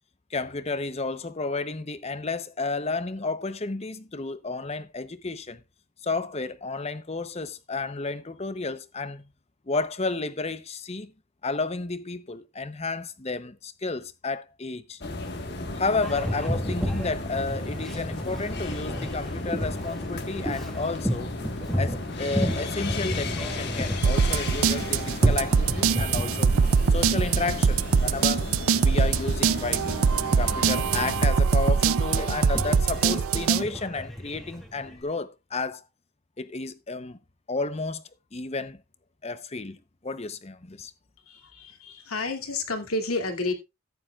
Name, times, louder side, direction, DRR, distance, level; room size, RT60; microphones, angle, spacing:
voice 1, 0.3-5.6 6.0-9.2 9.7-11.1 11.4-15.0 15.7-21.3 21.7-26.5 26.9-28.5 28.8-30.0 30.4-35.8 36.4-37.2 37.5-38.0 38.3-38.8 39.2-40.9, left 3 dB, 30° left, 0.7 m, -32 dB
sound 1, 15.0-31.3, left 2 dB, 50° left, 1.5 m, -34 dB
Boat Water vehicle, 16.0-35.0, equal, ahead, 2.0 m, -34 dB
sound 2, 24.0-33.6, right 5 dB, 80° right, 0.5 m, -23 dB
voice 2, 41.3-43.5, left 3 dB, 85° left, 2.5 m, -30 dB
14.0 x 10.5 x 2.4 m
head